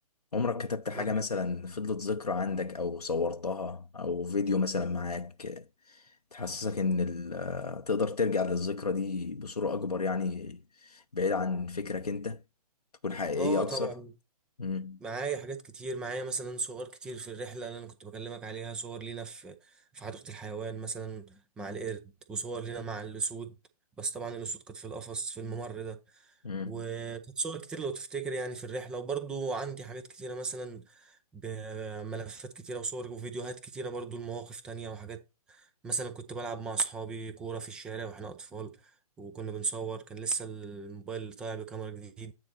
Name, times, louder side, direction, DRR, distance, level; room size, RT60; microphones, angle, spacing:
voice 1, 0.3-12.4 13.0-13.9 14.6-15.0 26.4-26.8, left 4 dB, 80° left, 0.6 m, -32 dB
voice 2, 13.4-14.1 15.0-23.6 24.0-26.3 26.7-35.2 35.5-42.3, right 4 dB, 5° right, 0.3 m, -37 dB
9.4 x 4.1 x 4.1 m
figure-of-eight pair, 130°, 20 cm